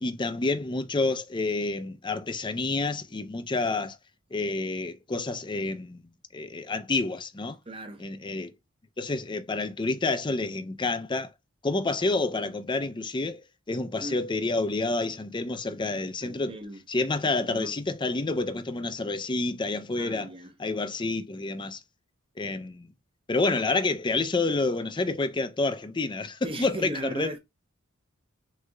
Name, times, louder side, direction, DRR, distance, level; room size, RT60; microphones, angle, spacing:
voice 1, 0.0-4.0 4.3-6.0 6.3-7.6 8.0-8.5 9.0-11.3 11.6-13.4 13.7-16.6 16.9-20.3 20.6-21.8 22.4-22.9 23.3-27.3, left 3 dB, 25° left, 0.5 m, -28 dB
voice 2, 7.7-8.1 14.0-14.2 16.2-16.8 17.3-17.8 20.0-20.5 26.4-27.4, right 1 dB, 25° right, 0.7 m, -38 dB
6.4 x 2.8 x 2.3 m
head